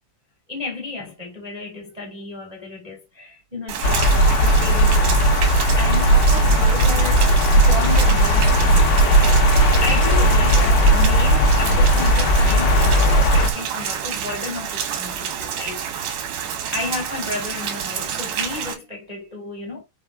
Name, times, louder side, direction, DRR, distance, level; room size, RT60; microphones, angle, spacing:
voice 1, 0.5-7.3 7.5-9.2 9.8-16.2 16.7-19.8, left 3 dB, 20° right, 1.0 m, -32 dB
Rain, 3.7-18.7, right 8 dB, 65° right, 2.1 m, -29 dB
sound 1, 3.8-13.5, right 1 dB, 90° left, 4.3 m, -16 dB
6.9 x 5.9 x 3.7 m
omnidirectional pair, 5.7 m